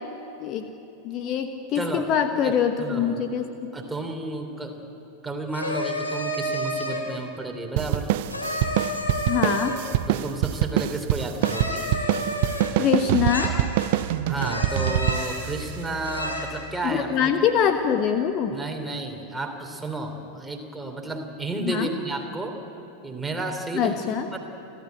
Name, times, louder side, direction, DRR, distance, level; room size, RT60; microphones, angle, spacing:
voice 1, 1.0-3.7 9.2-9.8 12.8-13.5 16.8-18.5 21.6-21.9 23.7-24.3, left 8 dB, 35° left, 7 dB, 1.1 m, -24 dB
voice 2, 1.7-2.1 2.4-3.3 3.7-4.9 5.2-8.1 10.1-11.8 14.3-17.3 18.5-22.6 23.0-24.0 24.3-24.4, right 2 dB, 5° right, 3 dB, 3.0 m, -32 dB
sound 1, 5.5-7.1 8.3-9.9 11.4-12.9 13.3-14.0 14.4-15.4 16.0-16.6, left 1 dB, 80° left, 3.5 m, -30 dB
sound 2, 7.8-16.6, right 13 dB, 50° right, 0.6 m, -26 dB
29.5 x 12.5 x 9.3 m, 2.9 s
figure-of-eight pair, 90°, 0 cm